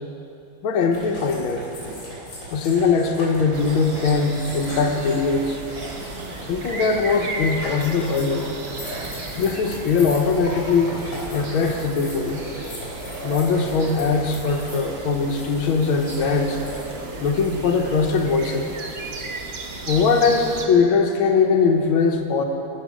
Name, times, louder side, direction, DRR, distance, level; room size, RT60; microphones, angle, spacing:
voice 1, 0.6-1.7 2.5-5.6 6.5-8.5 9.4-10.9 11.3-12.4 13.2-16.6 17.2-18.7 19.9-22.4, left 5 dB, 75° left, 3 dB, 1.7 m, -21 dB
sound 1, 0.9-17.5, equal, 60° left, 3.8 m, -38 dB
sound 2, 3.3-4.5 5.6-6.4 7.1-8.0 8.7-9.6 10.3-11.4 12.2-14.2 15.8-18.2, right 2 dB, 75° right, 2.6 m, -39 dB
sound 3, 3.5-20.7, right 2 dB, 90° right, 0.5 m, -35 dB
15.5 x 6.4 x 5.0 m, 2.7 s
omnidirectional pair, 2.4 m